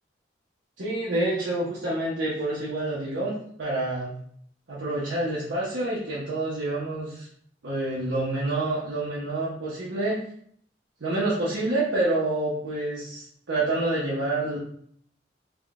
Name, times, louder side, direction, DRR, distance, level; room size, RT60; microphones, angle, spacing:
voice 1, 0.8-4.1 4.7-7.3 7.6-10.2 11.0-14.6, right 2 dB, 85° right, -7 dB, 0.7 m, -28 dB
3.5 x 2.2 x 2.4 m, 0.65 s
head